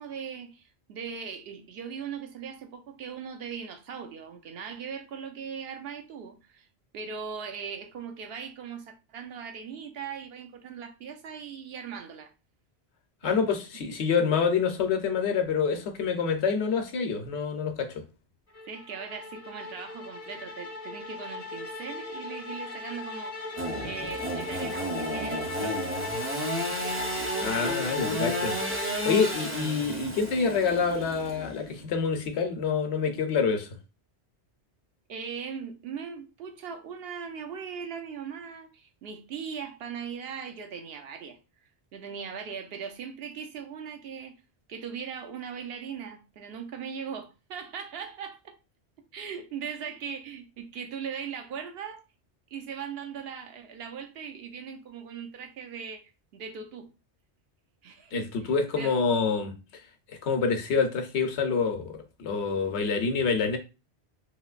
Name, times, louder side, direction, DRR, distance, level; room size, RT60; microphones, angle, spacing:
voice 1, 0.0-6.7 6.9-12.3 13.2-13.4 13.7-13.8 18.7-23.4 23.8-25.9 29.6-29.7 35.1-41.4 41.9-44.3 44.7-48.6 49.1-52.0 52.5-56.9 57.8-59.0, right 6 dB, 70° right, 0.8 m, -39 dB
voice 2, 13.2-18.0 27.4-28.5 29.1-33.7 58.1-59.6 60.2-61.9 62.2-63.6, left 5 dB, 80° left, 0.9 m, -27 dB
sound 1, 18.5-29.9, left 3 dB, 40° left, 0.5 m, -37 dB
Engine / Sawing, 23.6-31.8, right 1 dB, 15° right, 0.5 m, -33 dB
3.2 x 2.8 x 2.4 m
omnidirectional pair, 1.1 m